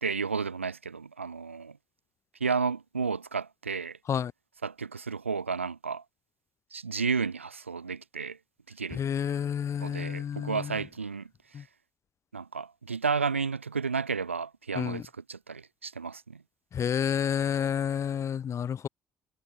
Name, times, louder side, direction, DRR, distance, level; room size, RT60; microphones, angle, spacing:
voice 1, 0.0-1.8 2.4-4.0 4.6-6.0 6.7-8.4 8.7-9.0 9.8-11.3 12.3-15.0 15.3-16.4, right 5 dB, 90° right, 1.2 m, -32 dB
voice 2, 8.9-10.8 11.5-11.6 14.8-15.0 16.7-18.9, left 8 dB, 45° left, 3.7 m, -30 dB
figure-of-eight pair, 45°, 7 cm